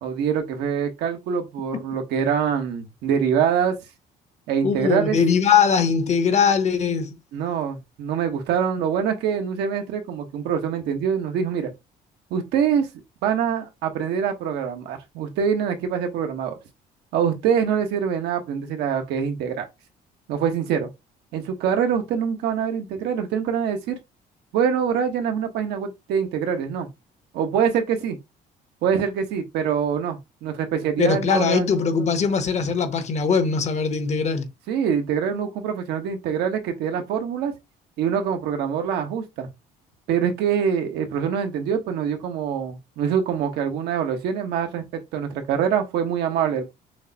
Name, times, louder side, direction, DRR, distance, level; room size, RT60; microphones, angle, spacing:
voice 1, 0.0-3.7 4.5-5.2 7.3-11.7 12.3-12.9 13.2-16.6 17.1-19.7 20.3-20.9 21.3-23.9 24.5-26.9 27.3-28.2 28.8-31.7 34.7-37.5 38.0-39.5 40.1-46.6, right 7 dB, 80° right, 1.0 m, -24 dB
voice 2, 4.6-7.1 31.0-34.5, left 6 dB, 40° left, 0.8 m, -21 dB
6.3 x 2.2 x 2.8 m
cardioid pair, 110°, 17 cm